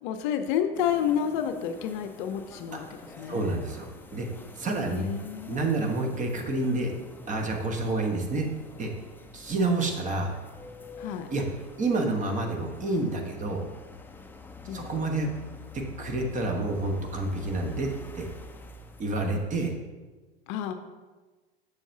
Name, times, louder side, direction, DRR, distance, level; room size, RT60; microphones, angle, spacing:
voice 1, 0.0-2.9 3.2-3.4 4.9-5.7 11.0-11.3 14.7-14.9 20.5-20.7, left 9 dB, 55° left, 8 dB, 0.6 m, -30 dB
sound 1, 0.7-19.8, left 2 dB, 5° left, 0.4 m, -47 dB
voice 2, 3.3-4.3 4.6-5.1 5.5-6.9 7.3-8.5 8.8-8.9 9.3-10.3 11.3-11.4 11.8-13.6 14.7-15.3 15.7-18.3 19.0-19.7, right 2 dB, 25° right, 3 dB, 1.1 m, -28 dB
7.1 x 6.6 x 2.7 m, 1.3 s
hypercardioid pair, 90°, 29 cm